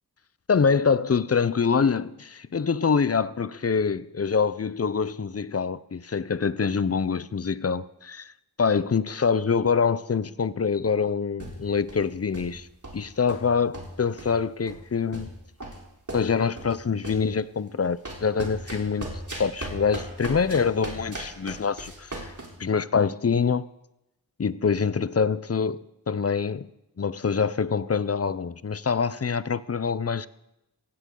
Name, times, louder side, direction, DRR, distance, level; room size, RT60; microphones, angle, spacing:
voice 1, 0.5-8.3 8.6-12.7 12.9-15.3 16.1-22.3 22.6-23.7 24.4-25.8 26.1-26.7 27.0-30.3, left 5 dB, 35° left, 0.6 m, -25 dB
sound 1, 11.4-12.1 12.3-12.6 12.8-13.4 13.7-14.4 14.7-14.8 15.1-16.8 17.0-17.3 18.0-22.5, right 1 dB, 45° right, 3.7 m, -37 dB
16.5 x 16.0 x 3.8 m
wide cardioid pair, 60°, 40 cm